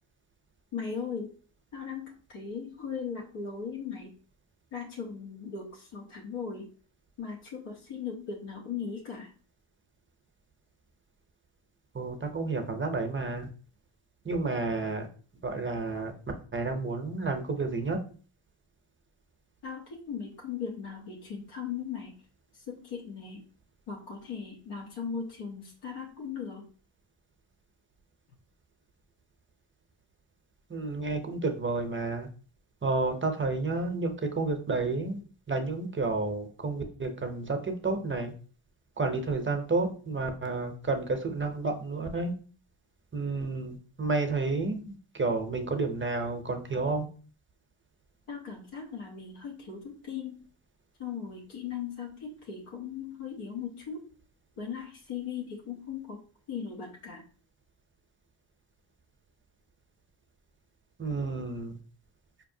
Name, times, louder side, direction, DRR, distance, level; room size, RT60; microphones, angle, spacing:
voice 1, 0.7-1.3 1.7-4.1 4.7-6.7 7.2-9.3 19.6-22.1 22.5-23.4 23.9-26.7 48.3-50.4 51.0-54.0 54.6-56.2 56.5-57.2, left 6 dB, 85° left, -1 dB, 0.9 m, -38 dB
voice 2, 11.9-13.5 14.2-15.1 15.4-16.1 16.5-18.0 30.7-32.3 32.8-35.2 35.5-38.3 39.0-42.3 43.1-47.0 61.0-61.8, right 3 dB, 25° right, 5 dB, 0.6 m, -30 dB
4.5 x 2.8 x 2.6 m, 0.41 s
cardioid pair, 85°, 49 cm